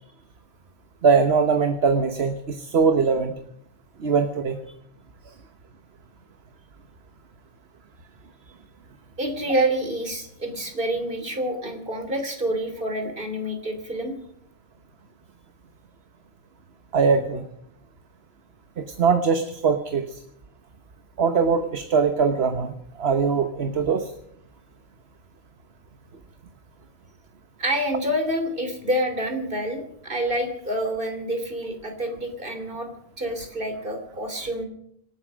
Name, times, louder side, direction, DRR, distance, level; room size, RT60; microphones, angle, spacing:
voice 1, 1.0-3.3 4.0-4.6 16.9-17.4 18.8-20.2 21.2-24.1, right 5 dB, 70° right, 8 dB, 1.3 m, -21 dB
voice 2, 9.2-14.1 27.6-32.9 33.2-34.6, right 1 dB, 50° right, 6 dB, 3.2 m, -27 dB
26.0 x 8.8 x 6.2 m, 0.73 s
omnidirectional pair, 1.1 m